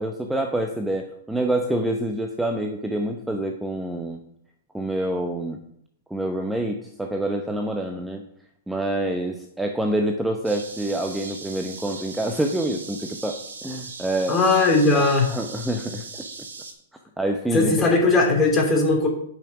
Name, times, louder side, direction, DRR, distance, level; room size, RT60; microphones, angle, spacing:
voice 1, 0.0-4.2 4.7-5.6 6.1-8.2 8.7-14.4 14.9-15.0 15.3-16.2 17.2-17.8, right 1 dB, 5° right, 4 dB, 0.8 m, -27 dB
sound 1, 10.4-16.7, right 4 dB, 70° right, 2.4 m, -39 dB
voice 2, 14.3-15.3 17.5-19.1, left 3 dB, 20° left, 0 dB, 3.0 m, -19 dB
10.5 x 6.1 x 4.8 m, 0.71 s
figure-of-eight pair, 105°, 0 cm